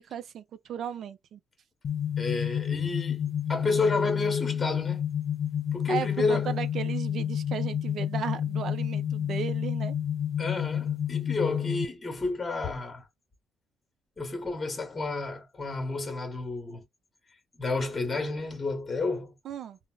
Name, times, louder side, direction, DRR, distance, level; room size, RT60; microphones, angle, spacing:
voice 1, 0.0-1.4 5.9-10.0 19.4-19.8, right 8 dB, 70° right, 0.4 m, -35 dB
sound 1, 1.8-11.9, left 9 dB, 60° left, 0.3 m, -30 dB
voice 2, 2.2-5.1 5.7-6.6 10.4-13.0 14.2-16.8 17.6-19.3, left 3 dB, 25° left, 1.0 m, -30 dB
3.8 x 2.0 x 2.2 m
cardioid pair, 90°, 0 cm